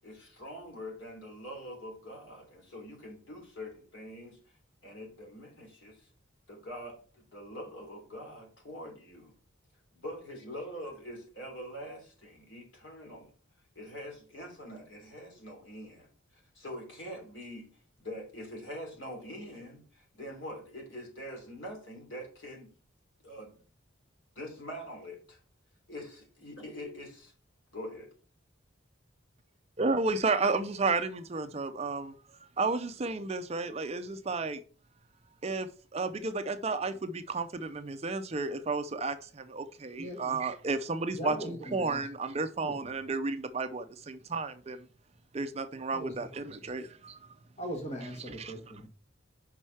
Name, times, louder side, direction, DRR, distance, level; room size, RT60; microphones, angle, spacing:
voice 1, 0.0-4.4 4.8-6.1 6.5-9.3 9.9-13.3 13.7-22.7 23.2-23.6 24.3-25.4 25.9-27.3 27.7-28.1, equal, 70° left, 3.1 m, -44 dB
voice 2, 29.8-32.1 32.6-34.6 35.4-44.8 45.3-47.2 48.4-48.5, right 3 dB, 30° right, 0.5 m, -32 dB
voice 3, 40.0-40.4 41.1-42.1 42.6-43.0 45.9-46.1 47.6-48.9, right 1 dB, 35° left, 1.5 m, -40 dB
5.4 x 4.8 x 5.6 m
head